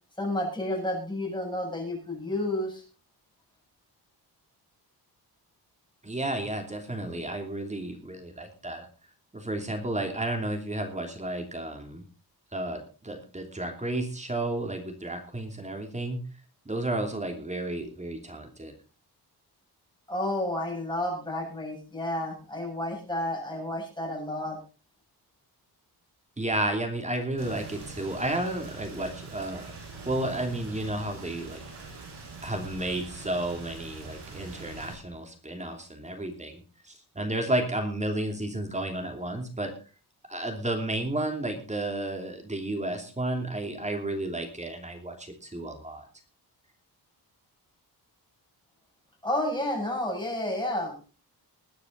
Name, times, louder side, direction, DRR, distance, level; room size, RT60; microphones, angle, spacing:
voice 1, 0.2-2.8 20.1-24.6 49.2-50.9, left 1 dB, 10° left, 0 dB, 7.2 m, -31 dB
voice 2, 6.0-8.9 9.3-12.0 12.5-16.2 16.6-18.7 26.4-29.7 30.1-31.6 31.9-32.0 32.4-36.6 36.8-39.7 40.3-46.0, right 1 dB, 15° right, 4 dB, 2.9 m, -32 dB
Rain, 27.4-34.9, right 4 dB, 85° right, 7.9 m, -43 dB
21.0 x 9.6 x 4.0 m, 0.34 s
wide cardioid pair, 140°, 40 cm